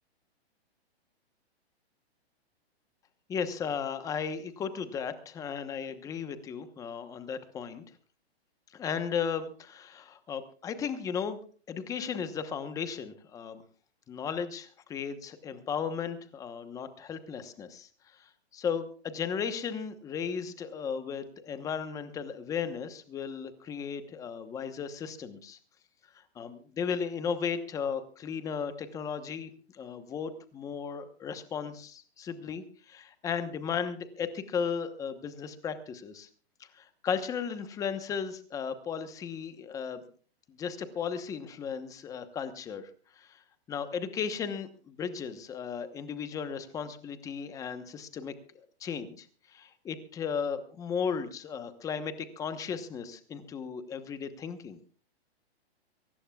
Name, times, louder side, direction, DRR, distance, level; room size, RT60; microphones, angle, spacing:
voice 1, 3.3-7.8 8.7-11.4 11.7-13.6 14.1-17.9 18.2-25.6 26.1-36.3 36.7-40.0 40.5-42.9 43.2-43.4 43.7-48.3 48.8-49.3 49.5-54.8, left 6 dB, 10° left, 10 dB, 1.0 m, -35 dB
23.0 x 19.0 x 2.4 m, 0.41 s
hypercardioid pair, 160°, 33 cm